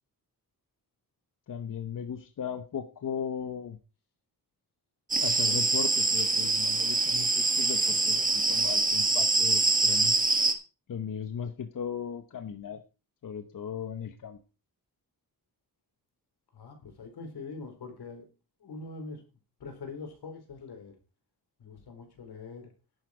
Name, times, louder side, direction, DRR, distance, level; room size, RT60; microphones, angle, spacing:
voice 1, 1.5-3.8 5.1-10.2 10.9-12.8 13.2-14.4, left 7 dB, 55° left, 9 dB, 1.0 m, -37 dB
sound 1, 5.1-10.5, right 3 dB, 20° right, 1.6 m, -25 dB
voice 2, 16.5-18.3 18.6-19.2 19.6-21.0 21.6-22.7, left 4 dB, 90° left, 5 dB, 4.1 m, -43 dB
11.0 x 8.7 x 4.9 m, 0.32 s
wide cardioid pair, 135°, 38 cm